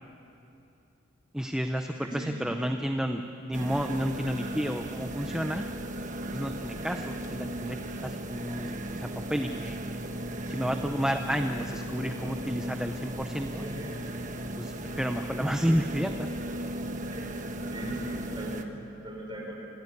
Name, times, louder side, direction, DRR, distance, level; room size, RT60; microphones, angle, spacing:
voice 1, 1.3-5.7 6.3-9.8 10.5-13.6 14.6-16.3, equal, 5° right, 5 dB, 0.6 m, -31 dB
voice 2, 2.0-2.7 13.6-14.0 17.1-17.4 17.7-19.5, right 1 dB, 25° right, -2 dB, 5.6 m, -39 dB
sound 1, 3.5-18.6, right 1 dB, 40° right, 1.3 m, -36 dB
26.0 x 16.5 x 9.8 m, 2.7 s
head